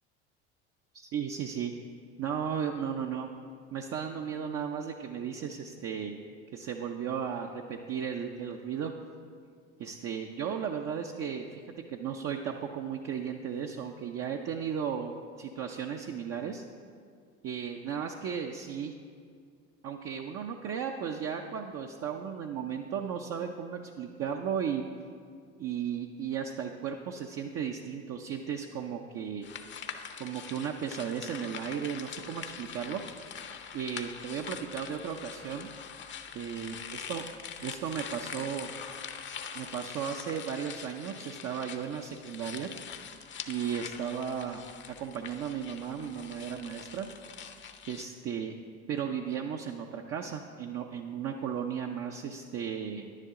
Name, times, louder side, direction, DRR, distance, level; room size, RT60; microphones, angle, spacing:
voice 1, 0.9-1.7 2.2-3.3 3.7-6.2 6.5-8.9 9.8-11.6 11.9-16.6 17.4-18.9 19.8-24.8 25.6-29.5 30.2-33.0 33.7-35.7 36.3-37.2 37.6-38.7 39.5-42.7 43.5-47.1 47.9-48.5 48.9-53.2, right 7 dB, 45° right, 2 dB, 0.7 m, -35 dB
sound 1, 29.4-48.0, left 7 dB, 30° left, 0.7 m, -44 dB
10.0 x 9.9 x 3.7 m, 2.2 s
hypercardioid pair, 80°, 35 cm